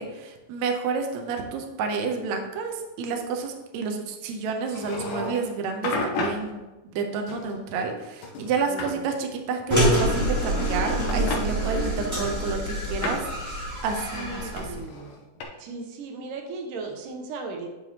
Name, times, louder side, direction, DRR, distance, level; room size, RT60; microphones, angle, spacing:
voice 1, 0.0-13.2 13.8-14.3 14.5-14.6, right 5 dB, 70° right, 4 dB, 1.9 m, -30 dB
sound 1, 4.7-5.5 5.8-6.5 7.3-8.0 8.2-9.0 10.1-10.8 11.1-11.4 12.3-13.3 14.6-15.4, left 2 dB, 85° left, 2.6 m, -32 dB
voice 2, 8.7-9.1 14.1-15.1 15.6-17.7, right 3 dB, 90° right, 2 dB, 2.5 m, -37 dB
sound 2, 9.7-14.8, equal, 10° right, 1.2 m, -26 dB
9.8 x 5.8 x 2.9 m, 1.1 s
omnidirectional pair, 3.7 m